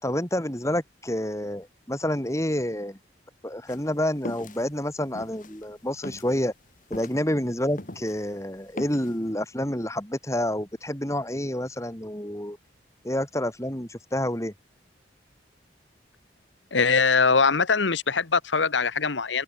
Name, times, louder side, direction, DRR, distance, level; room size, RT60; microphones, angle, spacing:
voice 1, 0.0-3.0 3.4-6.5 6.9-12.6 13.0-14.5, left 1 dB, 15° left, 4.4 m, -28 dB
sound 1, 3.7-8.3 8.6-9.2, left 1 dB, 45° left, 2.1 m, -40 dB
voice 2, 16.7-19.4, left 5 dB, 80° left, 1.4 m, -22 dB
open air
head